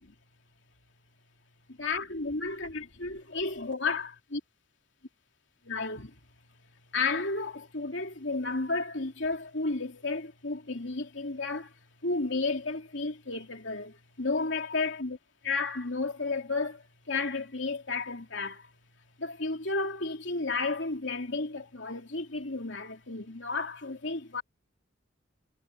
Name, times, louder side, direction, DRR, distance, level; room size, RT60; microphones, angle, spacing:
voice 1, 1.7-4.4 5.6-6.2 6.9-15.2 15.4-18.7 19.2-24.4, left 3 dB, 70° left, 3.0 m, -32 dB
head